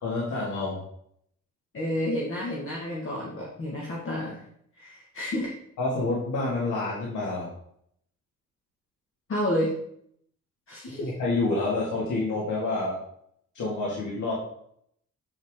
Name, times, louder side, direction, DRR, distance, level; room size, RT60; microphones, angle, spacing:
voice 1, 0.0-0.8 5.8-7.5 10.9-13.0 13.5-14.3, left 2 dB, 75° left, -5 dB, 2.2 m, -28 dB
voice 2, 1.7-4.4 4.8-5.5 9.3-9.7 10.7-11.1, left 1 dB, 45° left, -4 dB, 1.8 m, -30 dB
8.7 x 5.2 x 3.7 m, 0.69 s
cardioid pair, 90°, 30 cm